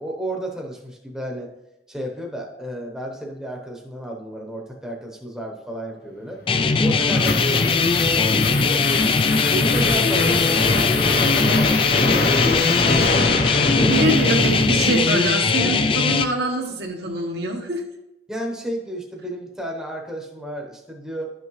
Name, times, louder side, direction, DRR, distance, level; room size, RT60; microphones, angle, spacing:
voice 1, 0.0-1.5 1.9-6.4 6.8-8.8 9.4-12.7 13.6-14.0 15.5-16.2 18.3-21.3, right 1 dB, 5° right, -1 dB, 0.9 m, -32 dB
sound 1, 6.5-15.4, left 2 dB, 55° left, 0.9 m, -24 dB
sound 2, 6.5-16.2, left 4 dB, 30° left, 0.4 m, -20 dB
voice 2, 13.9-17.8, right 2 dB, 65° right, 2 dB, 1.2 m, -24 dB
11.5 x 6.0 x 3.1 m, 0.92 s
head